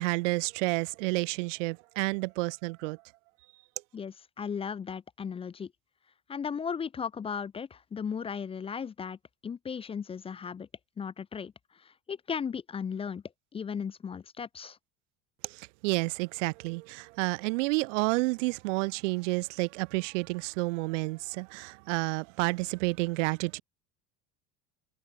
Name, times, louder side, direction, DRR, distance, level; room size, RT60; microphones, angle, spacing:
voice 1, 0.0-3.0 15.4-23.6, right 25 dB, 80° right, 1.3 m, -30 dB
voice 2, 3.9-5.7 6.3-10.7 11.0-13.2 13.5-14.8, left 6 dB, 15° left, 0.8 m, -36 dB
cardioid pair, 160°, 36 cm